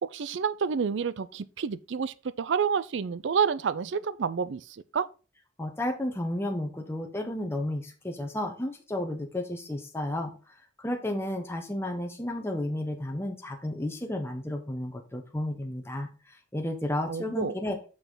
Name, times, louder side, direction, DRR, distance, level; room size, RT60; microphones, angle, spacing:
voice 1, 0.0-5.1 17.1-17.6, right 6 dB, 70° right, 0.4 m, -29 dB
voice 2, 5.6-10.3 10.8-16.1 16.5-17.8, left 1 dB, 10° left, 0.9 m, -32 dB
6.2 x 5.7 x 3.8 m
head